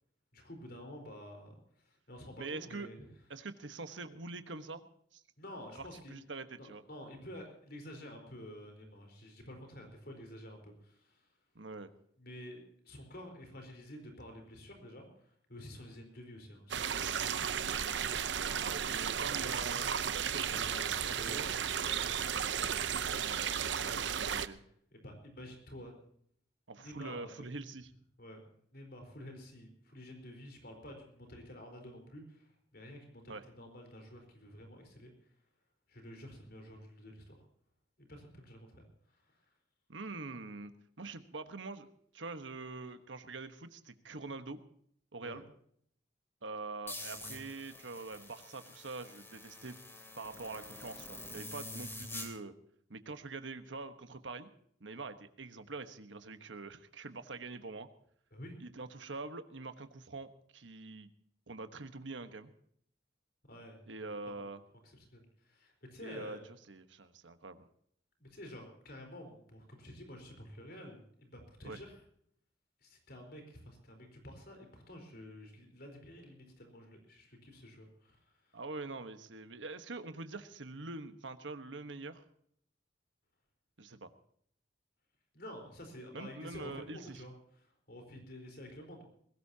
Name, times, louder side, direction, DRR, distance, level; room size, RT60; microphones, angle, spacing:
voice 1, 0.3-3.1 5.4-6.2 6.6-11.3 12.2-17.5 20.5-22.1 22.5-23.1 23.9-24.3 24.9-25.9 26.8-27.5 28.2-28.4 28.7-35.1 35.9-37.4 38.0-39.5 45.2-45.4 51.7-51.8 58.3-58.6 63.5-63.8 64.8-66.4 68.2-72.0 72.8-78.6 85.3-89.0, equal, 55° left, 4 dB, 4.4 m, -50 dB
voice 2, 2.4-2.9 3.3-4.9 5.1-5.2 5.7-6.8 11.5-11.9 18.6-20.6 21.1-21.4 23.2-24.6 26.7-27.9 33.3-33.4 39.9-40.7 41.0-41.9 42.1-44.6 45.1-45.5 46.4-49.8 50.2-52.5 52.9-54.5 54.8-57.9 58.6-61.1 61.5-62.5 63.9-64.6 66.0-66.4 66.7-67.6 71.6-71.8 78.5-82.2 83.8-84.1 86.1-87.2, right 3 dB, 85° right, 9 dB, 1.3 m, -44 dB
sound 1, 16.7-24.5, right 8 dB, 70° right, 0.7 m, -34 dB
sound 2, 46.9-52.3, left 2 dB, 15° left, 3.0 m, -47 dB
21.0 x 17.5 x 2.9 m, 0.65 s
head